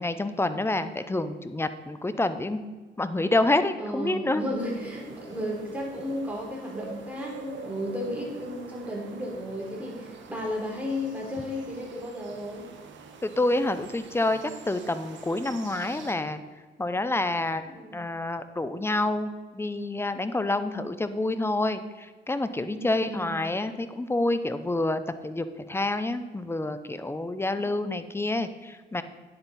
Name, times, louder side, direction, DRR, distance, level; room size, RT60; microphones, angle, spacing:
voice 1, 0.0-2.6 3.0-4.4 13.2-14.4 14.7-16.4 16.8-17.6 17.9-29.0, left 2 dB, 10° left, 11 dB, 0.7 m, -28 dB
voice 2, 3.8-12.7 17.7-18.1 22.7-23.3, left 1 dB, 5° right, -3 dB, 3.4 m, -34 dB
sound 1, 4.6-16.1, right 5 dB, 70° right, 1.3 m, -46 dB
9.7 x 8.1 x 4.2 m, 1.4 s
cardioid pair, 90°, 20 cm